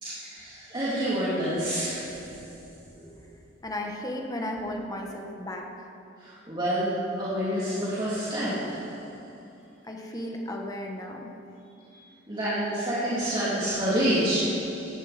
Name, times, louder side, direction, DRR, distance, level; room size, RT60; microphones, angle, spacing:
voice 1, 0.0-3.0 6.2-9.4 11.8-12.0 12.3-15.0, equal, 25° right, -10 dB, 3.4 m, -29 dB
voice 2, 3.6-5.9 9.9-11.3, left 1 dB, 20° left, 1 dB, 1.6 m, -35 dB
18.5 x 14.5 x 4.5 m, 2.8 s
head